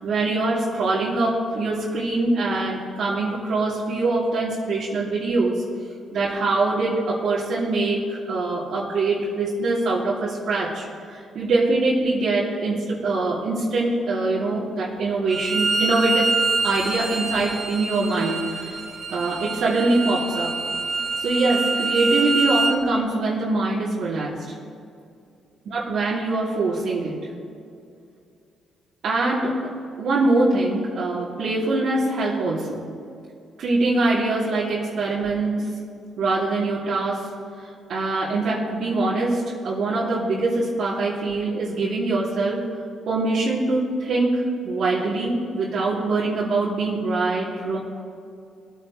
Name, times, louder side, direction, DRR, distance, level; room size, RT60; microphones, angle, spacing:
voice 1, 0.0-5.5 6.1-16.3 16.6-18.8 19.1-20.5 21.2-24.3 25.7-27.1 29.0-29.6 30.0-32.8 33.6-35.7 36.2-37.2 37.6-42.6 43.1-47.8, right 2 dB, 65° right, -8 dB, 2.8 m, -23 dB
Bowed string instrument, 15.3-22.7, right 3 dB, 45° right, 2.2 m, -26 dB
22.5 x 9.0 x 3.2 m, 2.4 s
cardioid pair, 90°, 0 cm